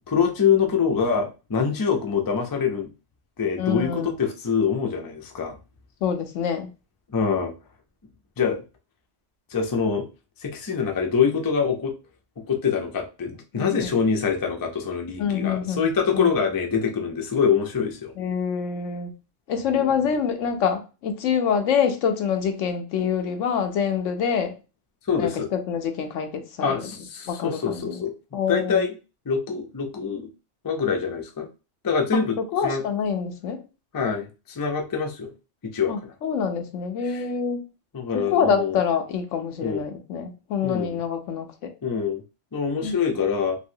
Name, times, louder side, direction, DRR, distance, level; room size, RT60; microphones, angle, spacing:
voice 1, 0.1-2.9 3.4-5.6 7.1-7.5 8.4-8.6 9.5-10.1 10.4-11.9 12.4-18.1 19.7-19.9 25.1-25.5 26.6-28.1 28.5-28.9 29.3-30.3 30.6-31.5 31.8-32.4 32.6-32.8 33.9-35.3 35.6-36.1 37.0-37.2 37.9-38.8 39.6-39.8 40.6-41.0 41.8-42.2 42.5-43.6, left 6 dB, 35° left, 0.3 m, -25 dB
voice 2, 3.6-4.1 6.0-6.7 13.5-13.8 15.2-15.9 16.1-16.3 18.2-19.1 19.5-24.5 25.2-26.8 27.3-28.0 28.3-28.8 32.1-32.2 32.5-33.6 35.9-37.6 38.1-41.7 42.8-42.9, left 7 dB, 90° left, 1.0 m, -26 dB
3.0 x 2.7 x 2.7 m
omnidirectional pair, 1.3 m